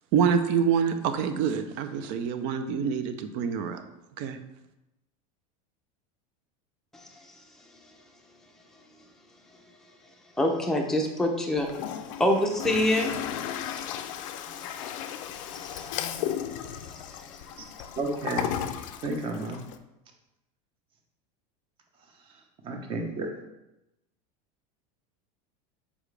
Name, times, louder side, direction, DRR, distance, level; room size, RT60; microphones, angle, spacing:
voice 1, 0.1-3.8 4.2-4.4, right 7 dB, 45° right, 0.6 m, -26 dB
voice 2, 10.4-11.7 12.2-13.1 13.6-13.9 14.2-16.1 16.5-17.3, left 1 dB, ahead, 0.6 m, -28 dB
Toilet flush, 11.6-19.8, left 10 dB, 65° left, 0.5 m, -35 dB
voice 3, 18.0-18.6 19.0-19.6 22.6-23.3, right 2 dB, 30° right, 1.0 m, -31 dB
7.0 x 4.9 x 3.3 m
supercardioid pair, 165°, 18 cm